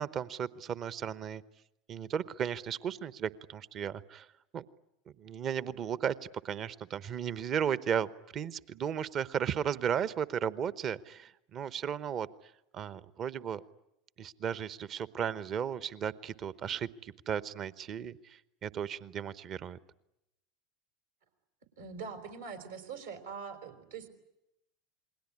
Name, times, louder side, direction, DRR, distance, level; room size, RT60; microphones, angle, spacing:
voice 1, 0.0-1.4 1.9-4.3 4.5-4.6 5.2-6.1 6.4-8.1 8.3-13.6 14.2-19.8, right 8 dB, 40° right, 17 dB, 1.0 m, -35 dB
voice 2, 21.8-24.1, right 5 dB, 75° right, 6 dB, 4.3 m, -43 dB
28.5 x 21.0 x 9.9 m, 0.87 s
figure-of-eight pair, 75°, 0 cm